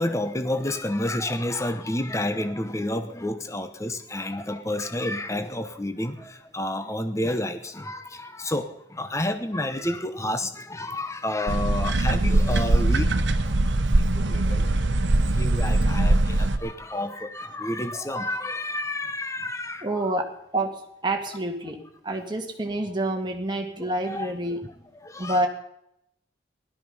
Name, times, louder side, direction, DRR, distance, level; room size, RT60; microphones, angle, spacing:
voice 1, 0.0-13.1 13.4-13.5 14.1-14.7 15.3-20.2 22.2-22.3 23.8-24.7 25.0-25.5, left 1 dB, 15° left, 1.0 m, -30 dB
sound 1, 11.5-16.6, right 2 dB, 75° right, 1.0 m, -21 dB
voice 2, 19.8-20.3 20.5-20.7 21.0-21.8 22.0-24.6 25.2-25.5, right 1 dB, 25° right, 1.9 m, -27 dB
17.0 x 12.5 x 5.5 m
head